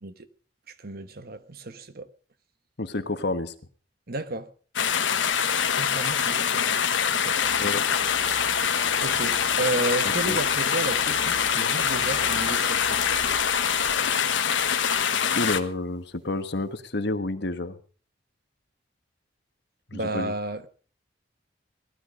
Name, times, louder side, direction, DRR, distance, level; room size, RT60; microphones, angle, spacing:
voice 1, 0.8-2.1 4.1-4.5 5.8-6.8 7.1-7.5 9.0-13.0 19.9-20.7, right 2 dB, 55° right, 1.1 m, -32 dB
voice 2, 2.8-3.5 7.6-7.8 10.0-10.4 15.3-17.8 19.9-20.3, left 2 dB, 60° left, 1.4 m, -29 dB
sound 1, 4.8-15.6, left 7 dB, 85° left, 1.3 m, -24 dB
sound 2, 7.4-15.2 15.6-15.7 16.1-16.2 16.4-16.8, right 2 dB, 75° right, 5.3 m, -41 dB
18.0 x 12.5 x 5.2 m
head